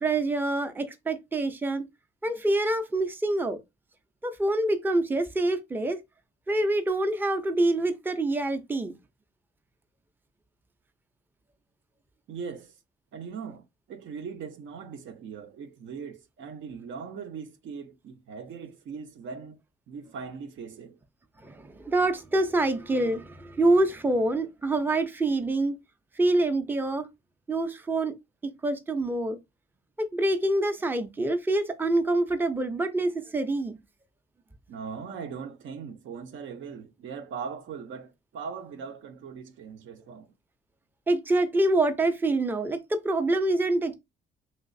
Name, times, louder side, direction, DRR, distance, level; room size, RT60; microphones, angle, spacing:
voice 1, 0.0-1.8 2.2-3.6 4.2-6.0 6.5-8.9 21.4-25.8 26.2-27.1 27.5-28.1 28.4-29.4 30.0-33.8 41.1-44.0, right 2 dB, 10° right, 0.5 m, -26 dB
voice 2, 12.3-12.7 13.1-19.6 19.9-21.0 34.7-40.3, right 6 dB, 70° right, 0.7 m, -40 dB
3.1 x 2.9 x 2.6 m
cardioid pair, 90°, 20 cm